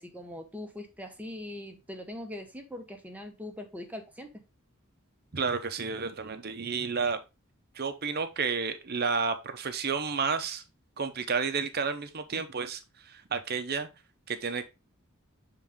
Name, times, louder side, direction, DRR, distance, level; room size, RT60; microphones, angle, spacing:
voice 1, 0.0-4.3, left 1 dB, 5° right, 0.9 m, -41 dB
voice 2, 5.3-7.2 7.8-10.6 11.0-13.9 14.3-14.6, right 5 dB, 45° right, 0.8 m, -31 dB
7.2 x 3.8 x 3.6 m
head